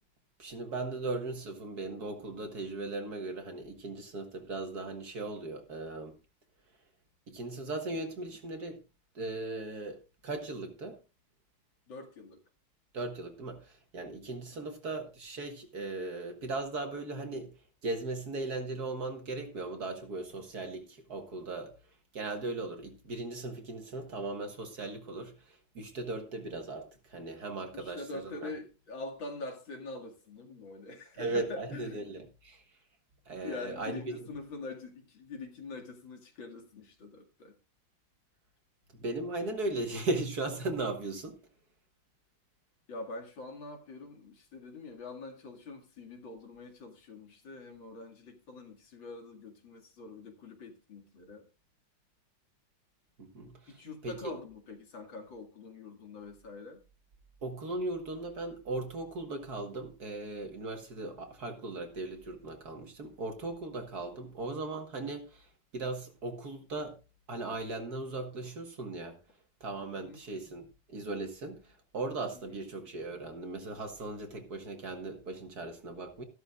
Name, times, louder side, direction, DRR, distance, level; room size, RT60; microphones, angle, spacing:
voice 1, 0.4-6.1 7.3-8.8 9.2-10.0 10.2-11.0 12.9-17.5 17.8-21.7 22.1-28.5 31.2-32.6 33.3-34.2 38.9-41.4 53.2-53.8 54.0-54.2 57.4-65.5 65.7-67.0 67.3-69.2 69.6-76.2, right 2 dB, 50° right, 1.9 m, -38 dB
voice 2, 11.9-12.4 14.5-14.7 27.7-32.0 33.4-37.5 42.9-51.5 53.7-56.8 69.9-70.2 72.3-72.6, left 3 dB, 65° left, 2.8 m, -44 dB
14.0 x 12.0 x 2.4 m
omnidirectional pair, 2.3 m